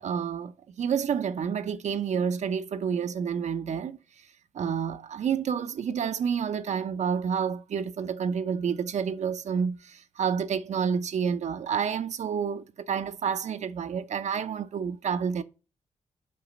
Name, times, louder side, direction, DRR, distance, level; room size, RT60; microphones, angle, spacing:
voice 1, 0.0-4.0 4.5-15.4, right 7 dB, 75° right, 0.7 m, -29 dB
5.5 x 4.9 x 6.2 m
wide cardioid pair, 105°, 12 cm